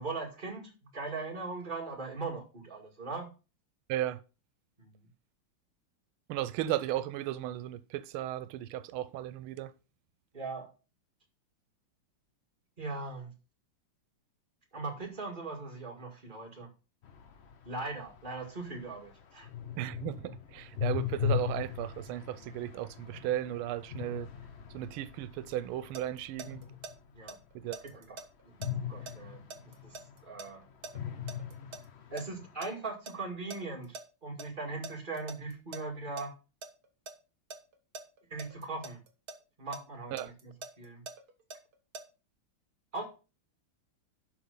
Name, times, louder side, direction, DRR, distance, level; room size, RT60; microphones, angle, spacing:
voice 1, 0.0-3.3 4.8-4.9 10.3-10.7 12.8-13.3 14.7-16.7 17.6-19.5 27.1-27.4 27.8-28.2 28.8-30.6 32.1-36.4 38.3-39.0 39.6-40.5 40.8-41.0 42.9-43.1, right 3 dB, 25° right, 2.4 m, -40 dB
voice 2, 3.9-4.2 6.3-9.7 19.8-24.3 24.7-26.6 27.5-27.8 40.1-40.3, right 13 dB, 90° right, 1.5 m, -35 dB
sound 1, 17.0-27.3 28.6-30.5 30.9-32.5, left 9 dB, 65° left, 0.6 m, -38 dB
sound 2, 25.6-26.9 27.3-31.8 32.2-34.0 34.4-34.5 34.8-36.2 36.6-37.1 37.5-39.4 39.7-42.0, right 3 dB, 50° right, 1.6 m, -44 dB
11.5 x 4.9 x 5.3 m
omnidirectional pair, 2.3 m